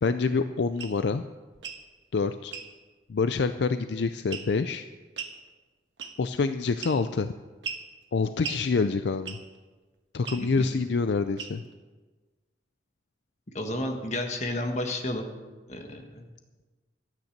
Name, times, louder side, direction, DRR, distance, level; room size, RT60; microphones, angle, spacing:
voice 1, 0.0-1.2 2.1-2.5 3.1-4.9 6.2-7.3 8.1-9.4 10.1-11.6, left 4 dB, 65° left, 10 dB, 0.4 m, -26 dB
sound 1, 0.8-1.0 1.5-1.8 2.5-2.7 4.3-4.6 5.2-5.4 6.0-6.3 6.8-7.2 7.6-7.9 8.4-8.6 9.3-9.6 10.2-10.4 11.4-11.7, right 6 dB, 80° right, 1.5 m, -37 dB
voice 2, 13.5-15.3 15.7-16.3, left 1 dB, 40° left, 3 dB, 1.5 m, -31 dB
13.5 x 9.3 x 6.7 m, 1.3 s
head